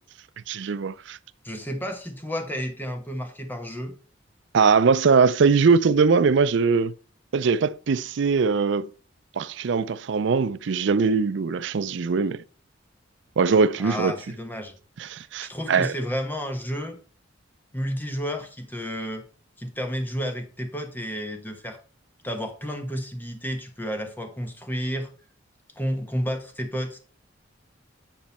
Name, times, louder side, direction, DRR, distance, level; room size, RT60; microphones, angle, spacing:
voice 1, 0.5-1.2 4.5-6.9 7.3-8.9 9.4-12.4 13.4-14.1 15.0-15.9, right 5 dB, 65° right, 0.4 m, -21 dB
voice 2, 1.4-4.0 13.8-14.8 15.4-17.0 17.7-19.2 19.6-21.8 22.2-25.1 25.8-27.0, equal, 10° left, 1.3 m, -31 dB
9.2 x 5.2 x 4.3 m
head